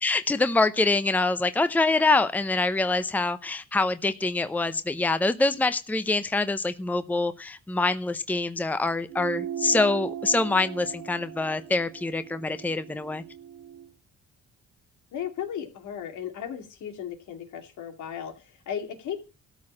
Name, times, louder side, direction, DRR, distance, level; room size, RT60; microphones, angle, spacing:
voice 1, 0.0-13.2, left 3 dB, 5° left, 12 dB, 0.7 m, -25 dB
sound 1, 9.1-13.9, right 9 dB, 70° right, 2.0 m, -38 dB
voice 2, 15.1-19.2, left 9 dB, 75° left, 5 dB, 2.4 m, -35 dB
13.5 x 4.7 x 8.5 m, 0.33 s
cardioid pair, 90°, 30 cm